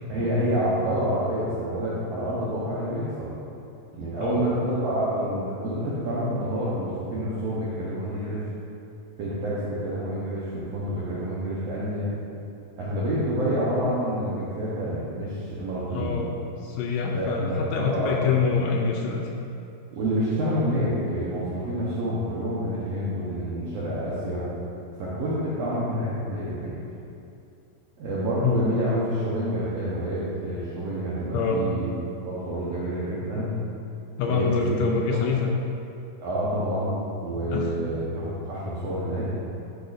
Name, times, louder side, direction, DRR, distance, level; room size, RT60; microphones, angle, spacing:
voice 1, 0.1-3.3 3.9-8.5 9.2-12.1 12.8-16.2 17.1-18.4 19.9-24.5 25.0-26.8 28.0-31.9 32.2-33.5 34.3-34.8 35.1-35.3 36.2-39.3, equal, 70° right, -9 dB, 1.6 m, -28 dB
voice 2, 4.2-4.5 15.9-16.3 16.6-19.2 28.4-28.6 31.3-31.6 34.2-35.5 37.5-37.7, left 5 dB, 85° left, -1 dB, 2.0 m, -25 dB
11.5 x 6.4 x 2.6 m, 2.7 s
omnidirectional pair, 4.3 m